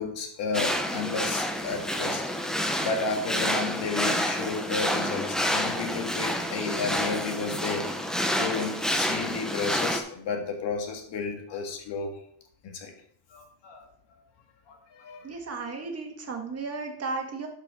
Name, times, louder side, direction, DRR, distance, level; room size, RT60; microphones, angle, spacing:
voice 1, 0.0-2.2 2.8-8.1 8.3-12.2 12.6-12.9 13.3-13.9 14.7-15.3, left 4 dB, 60° left, 3 dB, 1.9 m, -32 dB
sound 1, 0.5-10.0, equal, ahead, 0.6 m, -29 dB
voice 2, 15.2-17.5, right 4 dB, 30° right, 3 dB, 1.7 m, -34 dB
11.5 x 5.2 x 3.7 m, 0.64 s
cardioid pair, 140°, 48 cm